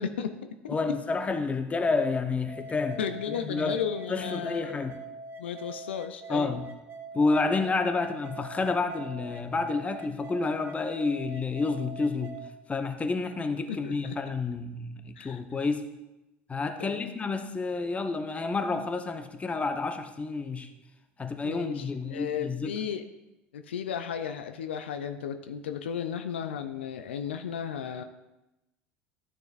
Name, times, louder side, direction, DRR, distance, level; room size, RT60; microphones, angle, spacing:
voice 1, 0.0-0.7 3.0-4.8 5.4-6.6 13.7-14.1 15.2-15.4 16.8-17.1 21.4-23.0 23.5-28.0, left 8 dB, 80° left, 8 dB, 0.4 m, -34 dB
voice 2, 0.7-3.0 3.3-3.8 4.1-5.0 6.3-6.7 7.1-12.4 12.7-15.8 16.5-20.7 21.2-22.7, left 3 dB, 20° left, 8 dB, 0.8 m, -29 dB
sound 1, 2.5-12.5, right 3 dB, 35° right, 1.1 m, -44 dB
12.0 x 6.5 x 2.5 m, 0.99 s
hypercardioid pair, 70°, 6 cm